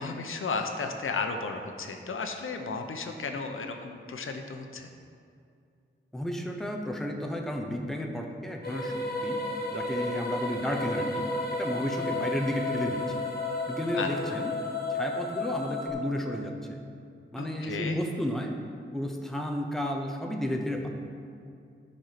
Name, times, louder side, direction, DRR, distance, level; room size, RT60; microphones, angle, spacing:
voice 1, 0.0-4.9 13.9-14.1 17.4-18.0, left 4 dB, 80° left, 5 dB, 0.9 m, -34 dB
voice 2, 6.1-9.4 9.7-13.0 13.7-14.5 14.9-16.8 17.3-18.6 18.9-20.9, equal, ahead, 2 dB, 0.9 m, -32 dB
sound 1, 8.6-15.9, left 2 dB, 50° left, 1.4 m, -32 dB
12.0 x 5.3 x 5.9 m, 2.4 s
wide cardioid pair, 135°, 21 cm